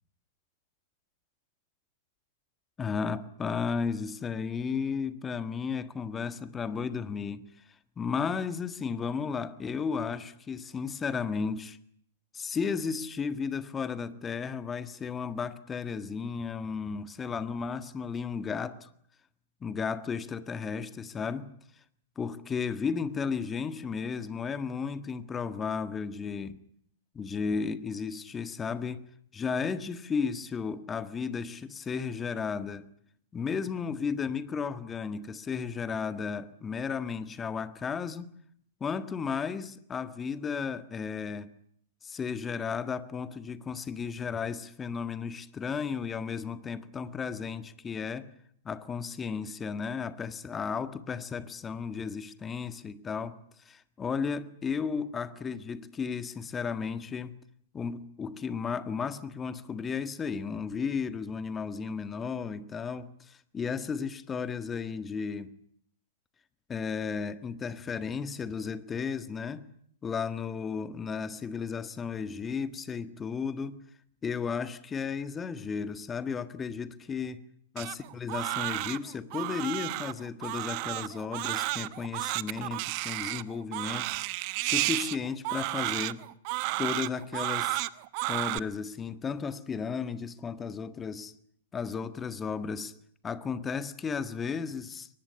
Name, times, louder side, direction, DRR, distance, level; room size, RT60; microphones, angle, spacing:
voice 1, 2.8-7.4 8.0-11.8 12.3-18.9 19.6-21.5 22.1-26.5 27.1-29.0 29.3-32.9 33.3-38.3 38.8-41.5 42.0-48.3 48.6-53.4 53.6-57.4 57.7-65.5 66.7-69.6 70.0-73.8 74.2-77.4 77.7-84.3 84.6-86.2 86.8-87.8 88.3-91.3 91.7-92.9 93.2-95.1, left 6 dB, 15° left, 1.7 m, -34 dB
Crying sobbing, 77.8-88.6, right 22 dB, 40° right, 0.9 m, -32 dB
23.0 x 20.0 x 9.5 m
figure-of-eight pair, 110°, 0 cm